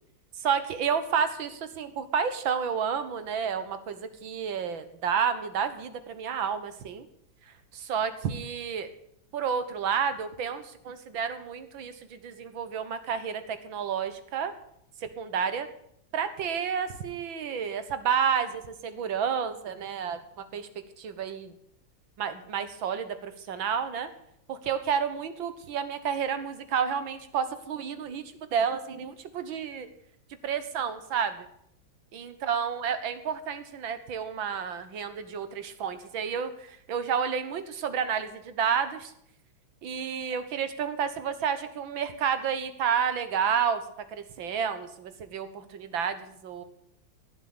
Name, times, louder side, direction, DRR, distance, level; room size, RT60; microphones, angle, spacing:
voice 1, 0.4-7.1 7.7-8.9 9.3-14.5 15.0-15.7 16.1-20.2 20.5-20.7 21.0-21.5 22.2-24.1 24.5-29.9 30.4-31.5 32.1-39.1 39.8-43.8 44.1-46.6, right 7 dB, 75° right, 11 dB, 2.1 m, -30 dB
16.5 x 7.4 x 8.8 m, 0.72 s
omnidirectional pair, 2.1 m